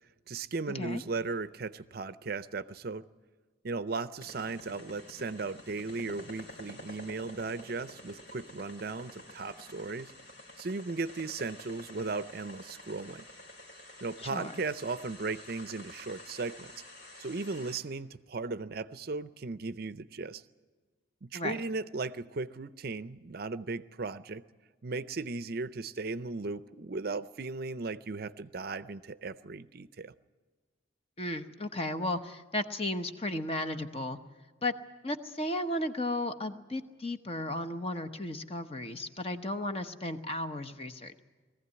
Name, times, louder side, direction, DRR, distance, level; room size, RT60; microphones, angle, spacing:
voice 1, 0.3-3.0 3.6-10.1 10.6-13.2 14.0-16.7 17.2-20.4 21.2-24.4 24.8-30.1, right 3 dB, 50° right, 14 dB, 0.5 m, -36 dB
sound 1, 4.2-17.8, left 1 dB, 60° left, 3.1 m, -49 dB
voice 2, 14.2-14.5 21.3-21.6 31.2-34.2 34.6-34.7 35.0-41.2, left 1 dB, 30° left, 9 dB, 0.9 m, -34 dB
21.0 x 15.0 x 9.6 m, 1.4 s
head